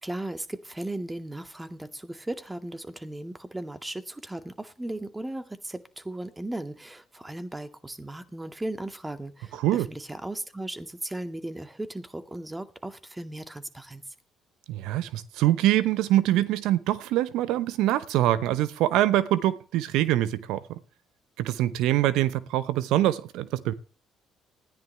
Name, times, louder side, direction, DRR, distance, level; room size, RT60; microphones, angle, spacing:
voice 1, 0.0-14.0, right 1 dB, 15° right, 2.1 m, -36 dB
voice 2, 9.5-9.9 14.7-20.8 21.4-23.7, right 14 dB, 70° right, 0.8 m, -24 dB
19.5 x 14.0 x 3.4 m
hypercardioid pair, 50°, 0 cm